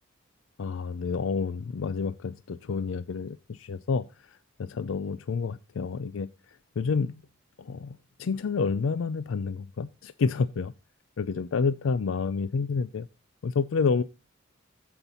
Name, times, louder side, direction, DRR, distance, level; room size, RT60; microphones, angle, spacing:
voice 1, 0.6-7.1 7.6-10.7 11.2-13.1 13.4-14.0, left 5 dB, 90° left, 16 dB, 0.4 m, -29 dB
15.0 x 5.8 x 4.1 m, 0.30 s
head